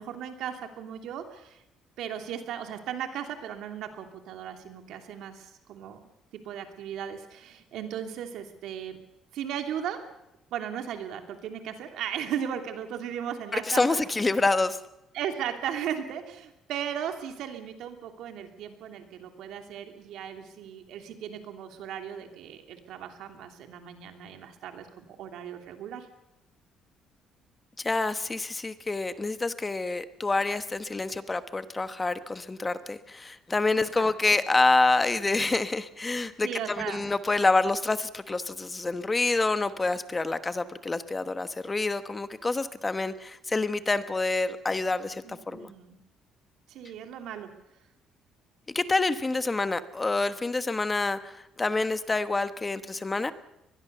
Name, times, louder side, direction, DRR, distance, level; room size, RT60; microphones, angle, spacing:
voice 1, 0.0-1.6 2.0-6.0 6.3-9.0 9.3-10.0 10.5-14.3 15.1-26.1 33.8-34.0 36.4-37.1 45.2-46.0 46.7-47.5, right 9 dB, 75° right, 5 dB, 2.9 m, -36 dB
voice 2, 13.5-14.8 27.8-45.7 48.7-53.3, left 3 dB, 20° left, 11 dB, 1.2 m, -27 dB
23.5 x 20.5 x 6.8 m, 0.88 s
cardioid pair, 115°, 0 cm